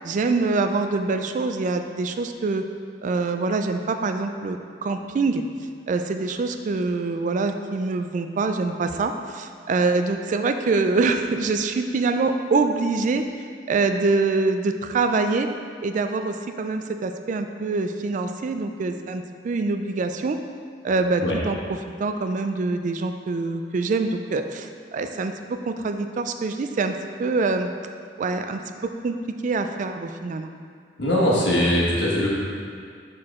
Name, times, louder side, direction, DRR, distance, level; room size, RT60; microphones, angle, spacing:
voice 1, 0.0-2.6 3.0-5.4 5.9-13.3 13.7-15.5 15.8-20.4 20.8-27.7 28.2-28.6 29.0-29.2 29.4-30.5, right 3 dB, 45° right, 7 dB, 0.3 m, -25 dB
voice 2, 31.0-32.3, left 1 dB, 85° left, -5 dB, 1.4 m, -21 dB
6.1 x 4.7 x 3.6 m, 2.1 s
head